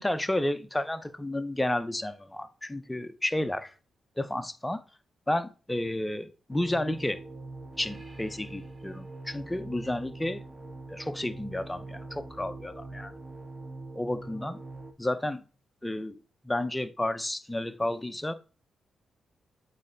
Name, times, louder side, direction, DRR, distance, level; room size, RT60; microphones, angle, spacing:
voice 1, 0.0-3.7 4.2-4.8 5.3-7.2 7.8-10.4 10.9-13.1 13.9-14.6 15.0-15.4 15.8-16.2 16.4-18.3, left 1 dB, 10° left, 0.7 m, -31 dB
sound 1, 6.5-14.9, right 2 dB, 25° right, 1.4 m, -43 dB
8.2 x 3.3 x 4.0 m
supercardioid pair, 60°, 0 cm